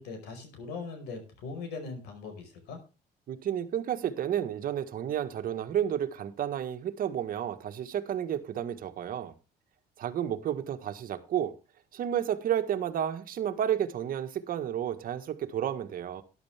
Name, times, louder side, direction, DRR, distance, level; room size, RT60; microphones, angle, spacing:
voice 1, 0.0-2.8, left 4 dB, 85° left, 5.0 m, -40 dB
voice 2, 3.3-9.3 10.0-11.5 11.9-16.2, right 10 dB, 55° right, 1.7 m, -31 dB
13.0 x 10.5 x 3.5 m
cardioid pair, 110°, 17 cm